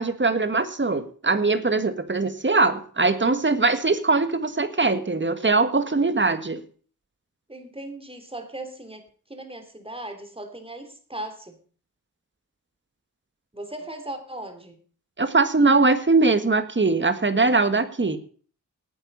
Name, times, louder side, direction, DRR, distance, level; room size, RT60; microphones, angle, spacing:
voice 1, 0.0-6.6 15.2-18.2, right 3 dB, 35° right, 10 dB, 1.7 m, -21 dB
voice 2, 7.5-11.6 13.5-14.8, right 1 dB, 15° right, 6 dB, 3.1 m, -38 dB
18.0 x 9.4 x 5.5 m, 0.43 s
wide cardioid pair, 75°, 33 cm